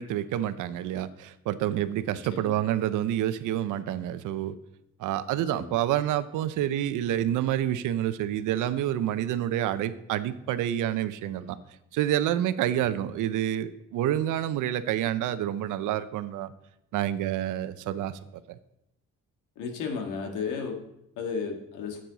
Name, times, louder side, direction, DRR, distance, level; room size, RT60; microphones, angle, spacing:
voice 1, 0.0-4.5 5.0-11.6 11.9-16.5 16.9-18.2 18.5-18.6, right 12 dB, 85° right, 13 dB, 0.6 m, -28 dB
voice 2, 19.5-20.8 21.2-22.0, left 5 dB, 90° left, 3 dB, 1.7 m, -33 dB
10.0 x 7.6 x 4.0 m, 0.82 s
cardioid pair, 90°, 30 cm